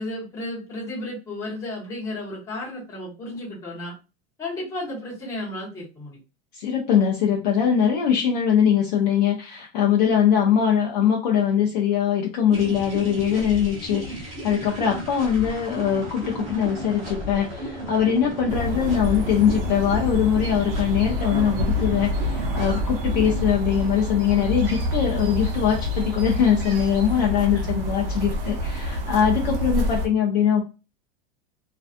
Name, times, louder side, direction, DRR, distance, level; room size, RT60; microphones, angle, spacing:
voice 1, 0.0-3.9 4.4-6.2 27.5-27.7, left 1 dB, 10° left, -6 dB, 0.7 m, -33 dB
voice 2, 6.5-30.6, left 8 dB, 40° left, -1 dB, 0.4 m, -22 dB
sound 1, 12.5-23.6, equal, 25° right, 0.9 m, -34 dB
sound 2, 18.5-30.1, left 1 dB, 55° right, 0.8 m, -27 dB
2.5 x 2.2 x 2.4 m, 0.30 s
supercardioid pair, 175°, 33 cm